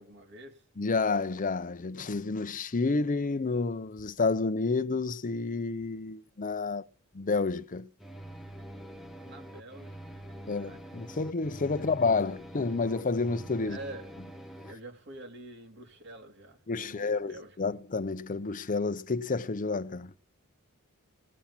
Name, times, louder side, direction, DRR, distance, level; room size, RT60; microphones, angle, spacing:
voice 1, 0.0-0.6 9.2-10.8 13.7-14.1 14.6-17.6, right 2 dB, 55° right, 3.5 m, -47 dB
voice 2, 0.8-6.9 7.1-7.9 10.5-13.8 14.6-14.7 16.7-20.1, left 4 dB, 40° left, 0.7 m, -30 dB
sound 1, 8.0-14.7, right 1 dB, ahead, 1.3 m, -45 dB
18.0 x 7.3 x 7.3 m
head